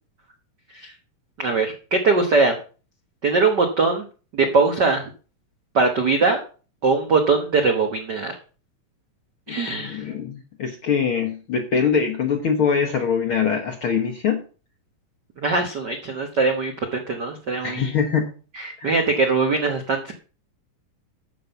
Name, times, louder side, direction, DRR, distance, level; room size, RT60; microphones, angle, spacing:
voice 1, 1.4-2.6 3.2-4.0 4.3-5.1 5.7-6.4 6.8-8.3 9.5-10.0 15.4-17.9 18.5-20.1, right 4 dB, 75° right, 4 dB, 0.9 m, -21 dB
voice 2, 9.5-14.4 17.6-18.3 18.8-18.9, left 6 dB, 65° left, 2 dB, 1.3 m, -23 dB
13.5 x 5.4 x 5.7 m, 0.37 s
omnidirectional pair, 3.9 m